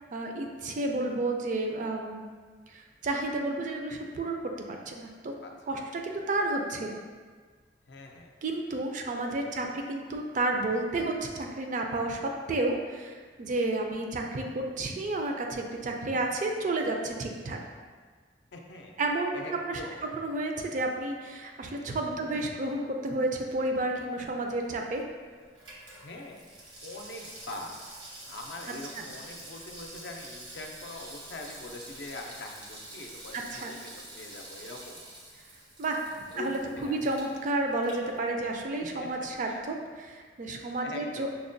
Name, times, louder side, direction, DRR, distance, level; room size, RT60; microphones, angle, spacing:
voice 1, 0.1-2.3 2.7-5.3 5.7-7.0 8.4-17.6 19.0-19.4 19.7-19.8 20.2-25.0 29.0-29.1 33.3-33.7 35.8-36.0 36.4-39.8 40.1-41.3, right 2 dB, 45° right, 2 dB, 0.4 m, -31 dB
voice 2, 5.4-5.8 7.9-8.3 9.3-9.8 18.5-19.0 19.3-20.0 22.1-22.4 26.0-26.4 26.8-35.0 36.3-37.0 39.0-39.1 39.4-39.8 40.8-41.4, left 2 dB, 65° left, 2 dB, 0.4 m, -43 dB
Water tap faucet / Sink (filling or washing), 24.4-38.7 39.0-39.1, right 1 dB, 85° right, 1.0 m, -47 dB
5.7 x 2.1 x 2.6 m, 1.5 s
head